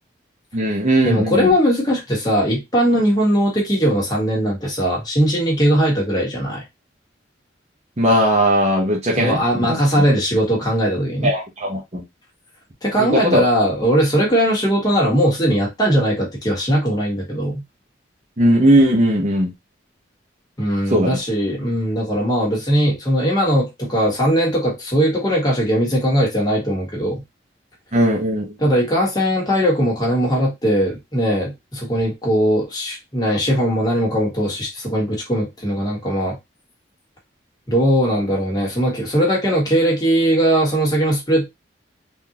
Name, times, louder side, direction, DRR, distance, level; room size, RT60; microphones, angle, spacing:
voice 1, 0.5-1.5 8.0-9.4 9.7-9.8 11.2-12.0 13.0-13.4 18.4-19.5 20.9-21.2 27.9-28.5, right 1 dB, 35° right, -2 dB, 0.8 m, -17 dB
voice 2, 1.0-6.6 9.2-11.3 12.8-17.6 20.6-27.2 28.6-36.4 37.7-41.5, equal, 20° left, -2 dB, 1.4 m, -19 dB
3.8 x 2.7 x 2.9 m, 0.20 s
head